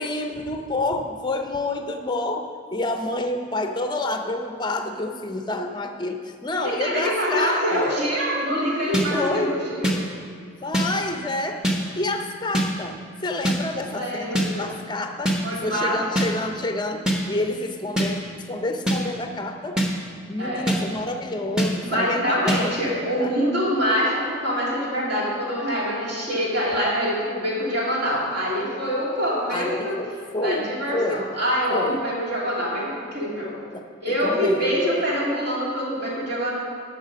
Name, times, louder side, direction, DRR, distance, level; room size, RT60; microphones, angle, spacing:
voice 1, 0.0-7.9 9.1-9.5 10.4-11.6 12.0-18.2 18.5-19.8 20.3-23.3 29.5-31.3 31.7-32.0 33.7-35.3, left 2 dB, 20° left, 5 dB, 0.6 m, -29 dB
voice 2, 6.6-9.9 13.9-14.7 15.4-16.2 20.4-20.7 21.8-30.0 30.4-33.6 34.0-36.5, equal, 50° right, -5 dB, 2.7 m, -25 dB
sound 1, 8.9-9.1 9.8-10.0 10.7-10.9 11.6-11.8 12.5-12.7 13.5-13.6 14.4-14.5 15.3-15.4 16.2-16.3 17.1-17.2 18.0-18.1 18.9-19.0 19.8-19.9 20.7-20.8 21.6-21.7 22.5-22.6, equal, 5° right, 0.9 m, -21 dB
11.0 x 6.8 x 5.2 m, 2.2 s
head